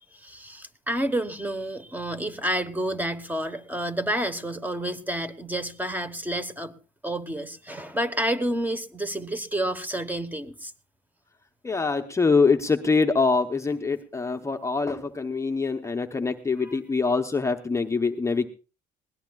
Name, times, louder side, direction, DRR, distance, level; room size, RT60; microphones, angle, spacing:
voice 1, 0.1-6.7 7.0-10.7 16.6-16.7, right 1 dB, 10° right, 10 dB, 1.1 m, -29 dB
voice 2, 11.6-18.5, left 4 dB, 15° left, 5 dB, 0.8 m, -24 dB
21.5 x 17.5 x 2.4 m, 0.34 s
cardioid pair, 110°, 17 cm